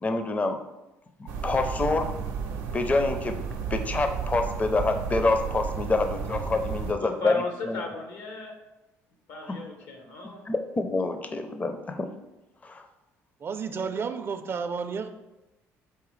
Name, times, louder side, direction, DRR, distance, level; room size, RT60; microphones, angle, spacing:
voice 1, 0.0-0.6 1.2-2.1 2.7-3.4 3.7-7.8 9.4-9.6 10.5-12.1 12.6-12.8, left 3 dB, 25° left, 7 dB, 0.4 m, -27 dB
sound 1, 1.3-6.9, right 6 dB, 90° right, 0.5 m, -33 dB
voice 2, 6.6-8.5 9.3-10.4, left 2 dB, 80° left, 3 dB, 0.9 m, -37 dB
voice 3, 13.4-15.1, right 5 dB, 40° right, 9 dB, 0.4 m, -31 dB
4.9 x 3.3 x 3.1 m, 0.99 s
supercardioid pair, 80°, 6 cm